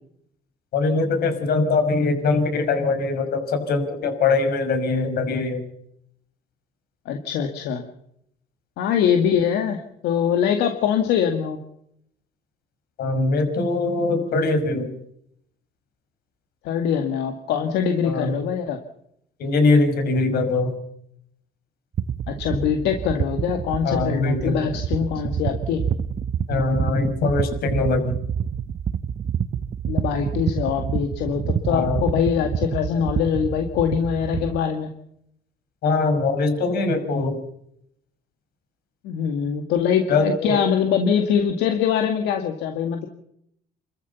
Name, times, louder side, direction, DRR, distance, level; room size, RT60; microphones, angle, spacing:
voice 1, 0.7-5.6 13.0-14.9 18.0-18.3 19.4-20.8 23.8-24.6 26.5-28.1 31.7-32.0 35.8-37.4 40.1-40.6, left 3 dB, 65° left, 6 dB, 5.9 m, -22 dB
voice 2, 7.1-7.8 8.8-11.6 16.6-18.8 22.3-25.8 29.9-34.9 39.0-43.1, left 8 dB, 85° left, 5 dB, 2.1 m, -23 dB
sound 1, 21.9-34.6, right 8 dB, 40° right, 0.9 m, -27 dB
28.5 x 14.0 x 7.2 m, 0.73 s
cardioid pair, 110°, 17 cm